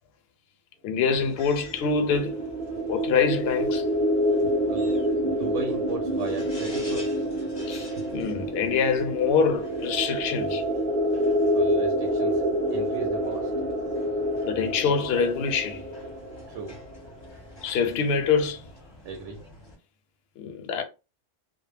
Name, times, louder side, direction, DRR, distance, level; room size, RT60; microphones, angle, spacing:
voice 1, 0.8-2.4 2.9-3.9 7.7-10.6 14.4-15.8 17.6-18.6 20.4-20.8, left 5 dB, 65° left, 0.7 m, -25 dB
sound 1, 1.1-19.8, left 1 dB, 30° left, 0.6 m, -48 dB
sound 2, 1.6-17.3, equal, 60° right, 0.6 m, -27 dB
voice 2, 5.2-7.2 8.0-8.1 11.5-12.4 12.7-13.5 16.5-16.8 19.0-19.4, right 5 dB, 85° right, 0.9 m, -37 dB
2.2 x 2.0 x 3.2 m
omnidirectional pair, 1.2 m